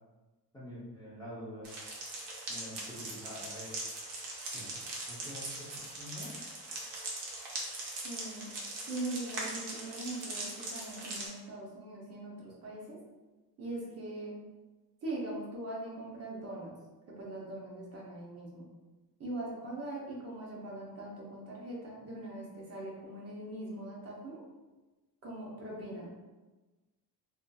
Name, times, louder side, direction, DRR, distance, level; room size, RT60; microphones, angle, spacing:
voice 1, 0.5-1.7 2.5-3.7 4.5-4.7 5.1-5.7 6.0-6.3, equal, 10° left, -10 dB, 0.5 m, -46 dB
sound 1, 1.6-11.3, right 2 dB, 70° right, 0.8 m, -41 dB
voice 2, 8.0-8.5 8.9-13.0 13.6-14.4 15.0-16.7 17.1-18.7 19.2-24.4 25.2-26.2, right 2 dB, 35° right, -4 dB, 0.6 m, -41 dB
2.7 x 2.4 x 2.2 m, 1.2 s
cardioid pair, 145°, 42 cm